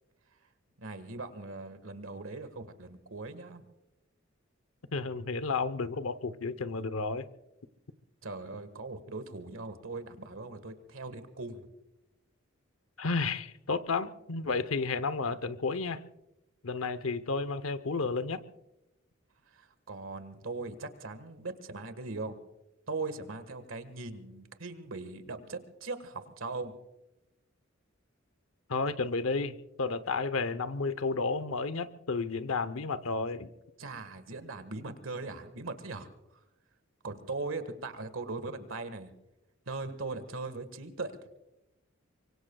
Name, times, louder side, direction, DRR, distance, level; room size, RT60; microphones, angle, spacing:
voice 1, 0.8-3.6 8.2-11.7 19.5-22.4 22.9-26.7 33.8-36.1 37.0-39.1 39.7-41.3, right 3 dB, 80° right, 11 dB, 1.6 m, -40 dB
voice 2, 4.9-7.3 13.0-16.0 16.6-18.4 28.7-33.5, left 4 dB, 85° left, 13 dB, 0.9 m, -32 dB
24.0 x 24.0 x 2.3 m, 0.92 s
head